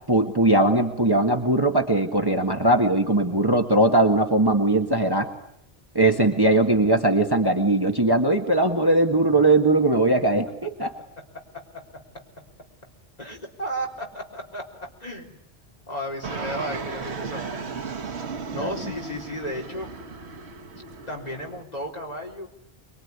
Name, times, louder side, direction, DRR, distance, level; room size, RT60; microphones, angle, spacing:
voice 1, 0.1-5.3 5.9-10.9 18.5-18.7, right 2 dB, 20° right, 3 dB, 1.7 m, -20 dB
voice 2, 11.3-12.2 13.2-15.4 15.9-18.0 18.5-19.9 21.1-22.5, equal, 40° left, 0 dB, 4.3 m, -34 dB
Fixed-wing aircraft airplane, 16.2-21.6, right 5 dB, 85° right, 1.5 m, -35 dB
25.0 x 22.5 x 9.7 m, 0.78 s
omnidirectional pair, 1.1 m